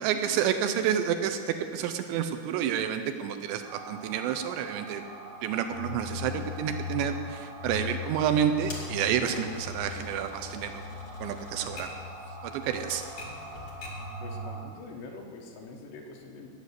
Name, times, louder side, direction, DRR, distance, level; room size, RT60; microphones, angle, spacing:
voice 1, 0.0-5.0 5.4-10.8 11.2-11.9 12.4-13.0, right 9 dB, 85° right, 8 dB, 2.8 m, -29 dB
sound 1, 3.6-14.6, left 3 dB, 25° right, 4.6 m, -40 dB
Typewriter, 8.7-14.1, left 2 dB, 45° left, 1.4 m, -45 dB
voice 2, 14.2-16.5, left 3 dB, 75° left, 1 dB, 3.3 m, -44 dB
17.5 x 6.6 x 8.1 m, 2.3 s
omnidirectional pair, 5.3 m